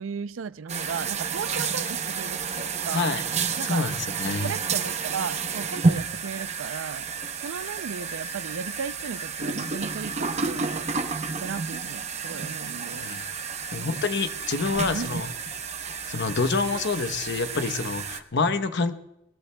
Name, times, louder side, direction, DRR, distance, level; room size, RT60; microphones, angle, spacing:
voice 1, 0.0-3.1 3.6-3.9 4.4-7.1 7.4-10.9 11.4-13.1 13.8-14.0 14.9-15.2, right 6 dB, 75° right, 0.4 m, -35 dB
sound 1, 0.7-18.2, right 5 dB, 35° right, 0.8 m, -30 dB
voice 2, 3.6-4.5 12.9-13.2 13.7-15.3 16.1-19.0, left 4 dB, 60° left, 0.9 m, -27 dB
20.5 x 20.0 x 2.2 m
head